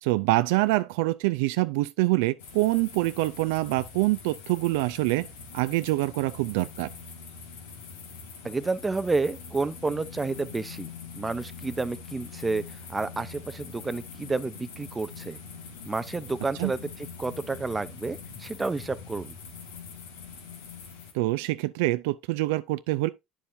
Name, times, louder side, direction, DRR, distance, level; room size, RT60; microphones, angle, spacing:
voice 1, 0.0-5.3 5.5-6.9 16.6-16.7 21.1-23.1, right 19 dB, 80° right, 0.3 m, -25 dB
sound 1, 2.4-21.1, left 5 dB, 90° left, 1.7 m, -43 dB
voice 2, 8.4-15.4 15.9-19.4, right 3 dB, 20° right, 0.4 m, -30 dB
8.7 x 7.1 x 2.6 m
hypercardioid pair, 80°, 0 cm